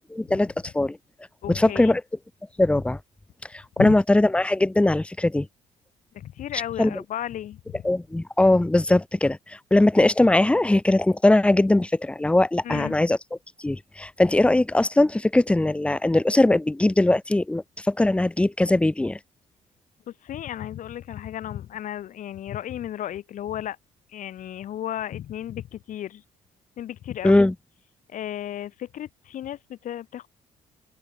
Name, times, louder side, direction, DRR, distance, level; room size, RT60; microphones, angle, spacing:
voice 1, 0.1-1.0 1.5-2.0 2.6-3.0 3.5-5.5 6.8-6.9 7.8-13.2 13.6-19.2 27.2-27.5, left 2 dB, 10° left, 0.6 m, -20 dB
voice 2, 1.4-1.9 3.8-4.0 6.1-7.8 12.6-13.0 20.1-23.8 24.1-26.2 26.8-27.4 28.1-30.3, left 11 dB, 65° left, 1.0 m, -34 dB
open air
supercardioid pair, 70°, 14 cm